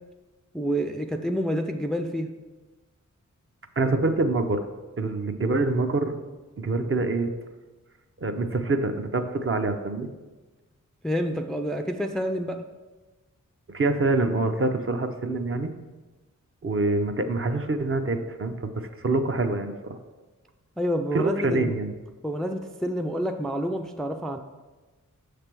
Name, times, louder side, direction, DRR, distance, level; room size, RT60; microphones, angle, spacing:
voice 1, 0.5-2.3 11.0-12.6 20.8-21.7 22.2-24.4, equal, ahead, 5 dB, 0.3 m, -28 dB
voice 2, 3.8-4.6 5.0-6.2 6.6-7.3 8.2-10.1 13.7-15.7 16.6-20.0 21.1-21.9, right 2 dB, 40° right, 6 dB, 0.6 m, -25 dB
6.6 x 3.3 x 6.0 m, 1.2 s
wide cardioid pair, 75°, 31 cm